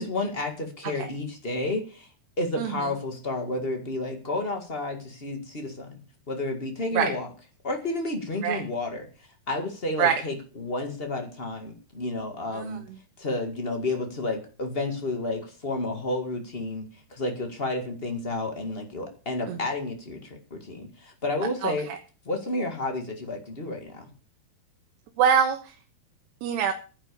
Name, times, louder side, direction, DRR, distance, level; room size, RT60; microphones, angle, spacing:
voice 1, 0.0-2.1 2.4-6.0 6.3-7.3 7.6-12.8 13.2-21.9 22.2-24.1, left 2 dB, 80° left, 4 dB, 0.5 m, -31 dB
voice 2, 25.2-25.7 26.4-26.7, right 7 dB, 80° right, 4 dB, 3.3 m, -23 dB
12.0 x 10.5 x 6.9 m, 0.36 s
omnidirectional pair, 4.7 m